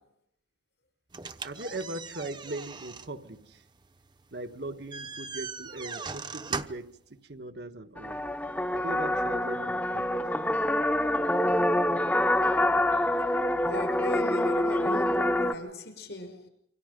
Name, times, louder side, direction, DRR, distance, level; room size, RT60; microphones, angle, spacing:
sound 1, 1.1-7.0, right 4 dB, 25° right, 0.8 m, -40 dB
voice 1, 1.4-3.6 4.3-8.2 8.7-10.2, right 2 dB, 70° right, 1.4 m, -39 dB
sound 2, 8.0-15.5, left 1 dB, 10° left, 0.8 m, -26 dB
voice 2, 13.6-16.5, left 1 dB, 75° left, 6.4 m, -38 dB
28.0 x 25.0 x 5.2 m
head